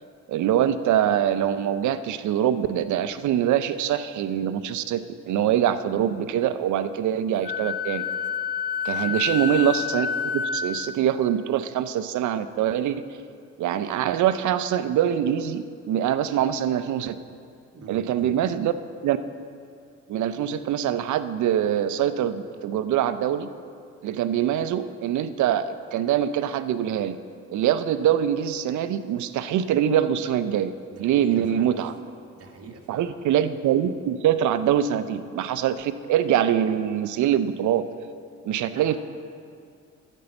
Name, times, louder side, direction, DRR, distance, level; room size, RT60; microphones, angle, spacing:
voice 1, 0.3-8.0 8.8-10.1 10.3-13.0 13.6-17.2 17.9-18.7 19.0-19.2 20.1-23.5 24.0-27.2 27.5-30.7 31.0-31.9 32.9-37.8 38.4-39.0, right 10 dB, 75° right, 12 dB, 0.6 m, -24 dB
Wind instrument woodwind instrument, 7.4-11.0, left 7 dB, 35° left, 0.4 m, -28 dB
voice 2, 9.0-9.4 17.7-18.4 30.9-31.8 32.3-33.2 38.7-39.0, right 3 dB, 50° right, 1 dB, 1.7 m, -44 dB
13.0 x 5.4 x 7.8 m, 2.3 s
cardioid pair, 90°, 30 cm